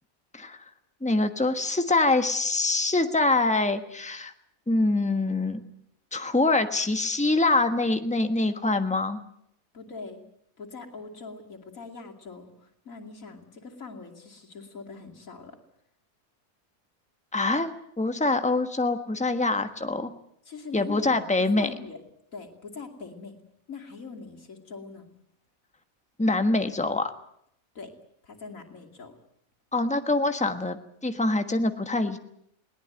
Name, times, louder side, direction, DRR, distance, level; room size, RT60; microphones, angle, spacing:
voice 1, 1.0-4.3 4.7-5.6 6.1-9.2 17.3-20.1 20.7-21.7 26.2-27.1 29.7-32.2, left 2 dB, 5° left, 7 dB, 1.3 m, -25 dB
voice 2, 9.7-10.2 10.6-15.6 20.4-22.0 22.3-23.3 23.7-25.1 27.7-28.0 28.2-29.2, left 4 dB, 70° left, 1 dB, 3.2 m, -42 dB
21.0 x 18.5 x 9.1 m, 0.72 s
omnidirectional pair, 1.5 m